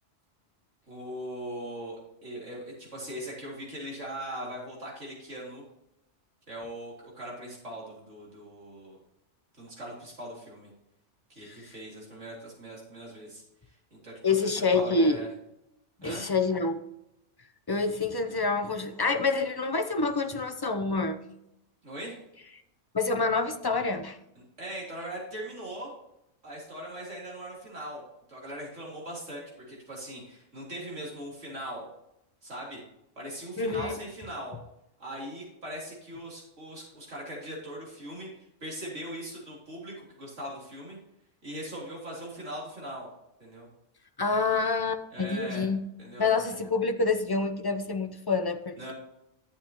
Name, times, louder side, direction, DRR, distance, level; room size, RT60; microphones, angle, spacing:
voice 1, 0.9-5.6 6.5-9.0 9.6-10.7 11.3-15.3 16.0-16.3 21.8-22.2 24.4-25.9 26.4-28.0 28.3-31.9 32.4-32.8 33.2-34.5 35.0-41.0 41.4-43.1 43.4-43.7 45.1-45.7 46.0-46.5 48.8-48.9, right 1 dB, 85° right, -4 dB, 3.8 m, -40 dB
voice 2, 14.2-15.2 16.0-16.8 17.7-21.2 22.9-24.2 33.6-34.0 44.2-45.8 46.2-48.9, left 3 dB, 25° left, 7 dB, 0.6 m, -27 dB
11.0 x 8.6 x 3.0 m, 0.83 s
omnidirectional pair, 1.2 m